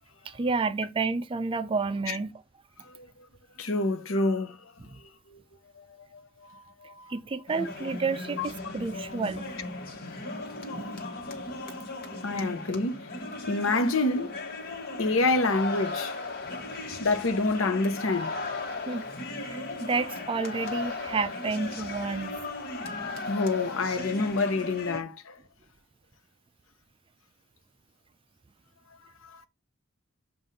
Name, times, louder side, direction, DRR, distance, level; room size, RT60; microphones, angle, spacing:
voice 1, 0.2-2.3 4.8-5.0 7.1-9.5 10.7-11.0 18.9-19.1 19.4-22.4, right 4 dB, 25° right, 0.4 m, -30 dB
voice 2, 3.6-4.6 5.0-5.4 5.7-7.1 8.4-8.5 12.2-13.1 13.5-14.3 15.0-16.1 16.5-16.6 17.0-18.3 23.3-25.4 29.2-29.5, left 3 dB, 80° left, 0.9 m, -28 dB
sound 1, 7.5-25.0, left 3 dB, 50° left, 1.3 m, -37 dB
7.4 x 2.5 x 5.2 m
head